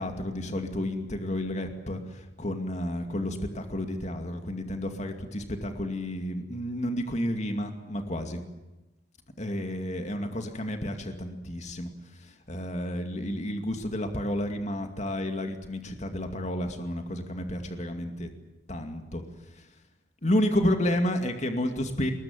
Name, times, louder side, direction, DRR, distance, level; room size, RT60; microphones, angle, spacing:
voice 1, 0.0-8.4 9.4-11.9 12.1-18.3 18.7-19.2 19.5-19.6 20.2-22.1, left 1 dB, 40° left, 5 dB, 2.4 m, -31 dB
22.0 x 21.0 x 9.4 m, 1.0 s
head